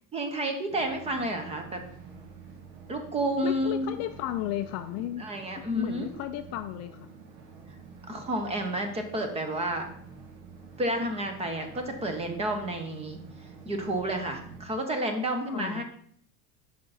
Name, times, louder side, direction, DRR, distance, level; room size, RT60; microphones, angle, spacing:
voice 1, 0.1-1.8 2.9-4.0 5.2-6.1 8.1-9.9 10.8-13.2 13.6-15.8, right 1 dB, 15° right, 6 dB, 1.0 m, -30 dB
sound 1, 0.7-14.7, right 5 dB, 60° right, 1.7 m, -48 dB
voice 2, 3.4-5.3 5.6-7.1 15.5-15.8, left 13 dB, 45° left, 8 dB, 0.4 m, -34 dB
8.4 x 5.9 x 4.1 m, 0.64 s
cardioid pair, 165°, 38 cm